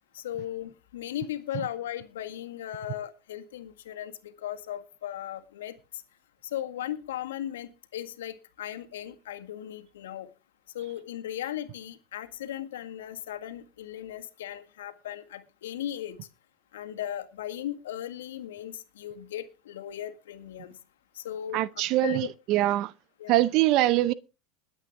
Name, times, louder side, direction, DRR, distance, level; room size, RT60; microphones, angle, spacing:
voice 1, 0.1-5.7 6.5-10.3 10.7-16.2 16.7-20.7 21.2-21.6 22.0-22.3 23.2-23.4, left 11 dB, 80° left, 1.8 m, -37 dB
voice 2, 21.5-22.9 23.3-24.1, right 15 dB, 55° right, 0.6 m, -23 dB
21.0 x 8.1 x 3.6 m
hypercardioid pair, 95°, 0 cm